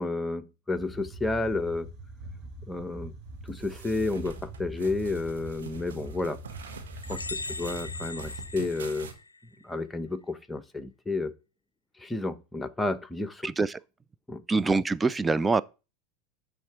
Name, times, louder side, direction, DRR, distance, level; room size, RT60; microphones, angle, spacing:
voice 1, 0.0-1.9 2.7-3.1 3.4-6.4 7.1-9.1 9.6-11.3 12.0-13.5 14.3-14.4, left 2 dB, 10° left, 0.8 m, -31 dB
sound 1, 0.8-8.6, right 1 dB, 40° right, 1.8 m, -43 dB
sound 2, 3.5-9.1, right 5 dB, 75° right, 1.5 m, -46 dB
sound 3, 7.0-9.6, left 2 dB, 90° left, 0.4 m, -39 dB
voice 2, 13.4-13.8 14.5-15.6, right 3 dB, 15° right, 0.3 m, -25 dB
9.9 x 3.5 x 4.7 m
figure-of-eight pair, 80°, 0 cm